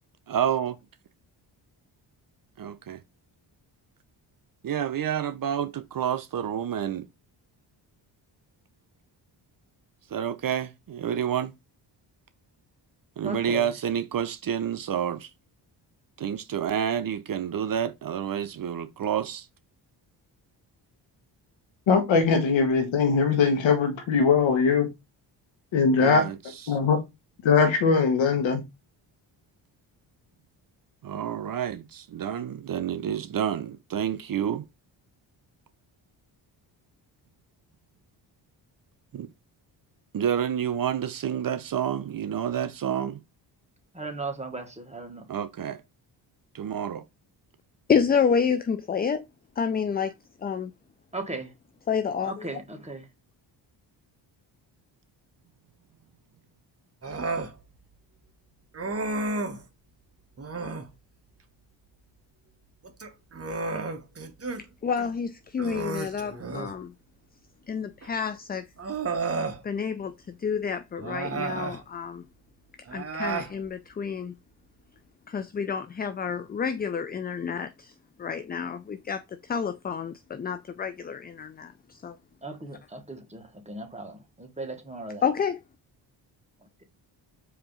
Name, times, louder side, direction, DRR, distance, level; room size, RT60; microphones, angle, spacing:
voice 1, 0.3-0.7 2.6-3.0 4.6-7.1 10.1-11.5 13.2-15.3 16.2-19.5 26.0-26.4 26.7-26.8 31.0-34.6 39.1-39.3 40.1-43.2 45.3-45.8 46.5-47.0, right 9 dB, 45° right, 0.6 m, -29 dB
voice 2, 13.2-13.7 43.9-45.3 51.1-51.5 52.2-53.1 82.4-85.2, right 2 dB, 15° right, 1.4 m, -37 dB
voice 3, 21.9-24.9 25.7-26.3 26.7-27.0 27.4-28.6, left 5 dB, 75° left, 1.3 m, -21 dB
voice 4, 47.9-49.2 49.6-50.1 50.4-50.7 51.9-52.5 64.8-66.9 67.7-68.6 69.6-72.2 72.9-74.3 75.3-77.9 78.2-82.1 85.2-85.6, left 6 dB, 25° left, 0.3 m, -29 dB
Human voice, 57.0-57.5 58.7-59.6 60.4-60.9 62.8-64.6 65.0-65.1 65.6-66.8 68.0-68.1 68.8-69.6 71.0-71.8 72.9-73.5, right 3 dB, 30° right, 1.0 m, -32 dB
4.7 x 2.9 x 3.8 m
cardioid pair, 70°, 46 cm